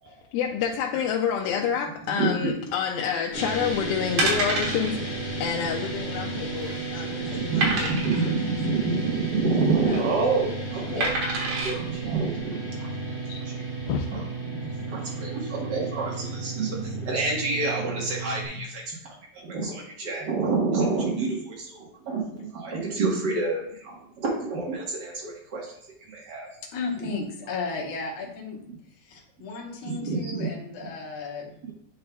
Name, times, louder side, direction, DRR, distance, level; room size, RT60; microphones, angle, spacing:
voice 1, 0.1-8.9 9.8-10.2 10.9-11.2 12.8-12.9 13.3-13.4 13.8-14.1, left 7 dB, 90° left, 1 dB, 2.4 m, -29 dB
sound 1, 3.3-18.5, right 3 dB, 50° left, 1.2 m, -33 dB
sound 2, 3.5-3.7 4.2-4.9 5.3-5.4 5.7-5.8 6.4-6.8 7.6-8.3 9.6-10.0 11.0-11.8 12.4-12.5, right 2 dB, 60° right, 2.5 m, -27 dB
voice 2, 7.2-11.1 11.6-12.7 13.0-13.2 14.5-19.0 19.3-25.7 26.1-26.5 27.0-27.1 29.8-30.5, right 3 dB, 80° right, -3 dB, 0.9 m, -28 dB
voice 3, 26.7-28.6 29.0-31.5, left 4 dB, 70° left, -1 dB, 1.2 m, -34 dB
9.4 x 5.4 x 2.3 m, 0.69 s
omnidirectional pair, 4.1 m